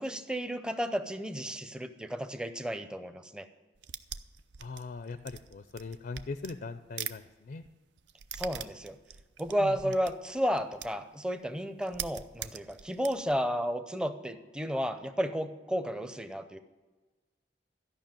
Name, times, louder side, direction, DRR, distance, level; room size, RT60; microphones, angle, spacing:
voice 1, 0.0-3.5 8.3-9.0 9.4-16.6, equal, 5° right, 9 dB, 0.6 m, -32 dB
sound 1, 3.8-7.2 7.5-11.1 11.4-11.5 11.8-13.3, right 9 dB, 80° right, 0.5 m, -42 dB
voice 2, 4.6-7.6 9.6-9.7, left 3 dB, 55° left, 10 dB, 0.4 m, -40 dB
13.0 x 5.7 x 8.9 m, 1.2 s
head